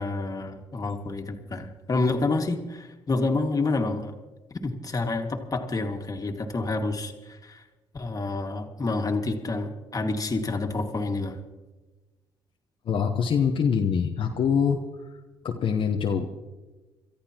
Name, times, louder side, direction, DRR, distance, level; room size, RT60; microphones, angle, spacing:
voice 1, 0.0-4.1 4.6-7.6 7.9-11.4, left 3 dB, 35° left, 4 dB, 2.0 m, -28 dB
voice 2, 12.8-14.8 15.4-16.3, left 7 dB, 60° left, 1 dB, 1.1 m, -24 dB
28.0 x 13.5 x 3.0 m, 1.2 s
supercardioid pair, 65°, 10 cm